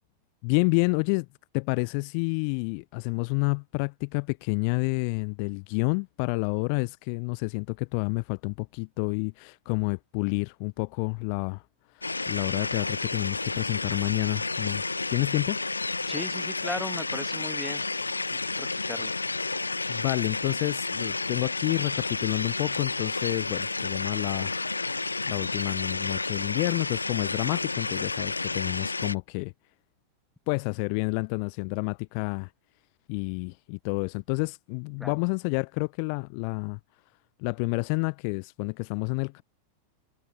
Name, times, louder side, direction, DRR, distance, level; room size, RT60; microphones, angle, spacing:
voice 1, 0.4-1.3 1.5-11.6 11.9-14.8 15.1-15.6 19.9-24.6 25.2-29.5 30.5-32.5 33.1-36.8 37.4-39.4, left 40 dB or more, 45° left, 0.8 m, -29 dB
sound 1, 12.0-29.2, left 3 dB, 80° left, 1.2 m, -31 dB
voice 2, 16.1-17.9 18.6-19.1 35.0-35.1, left 1 dB, 5° left, 1.8 m, -37 dB
figure-of-eight pair, 90°, 0 cm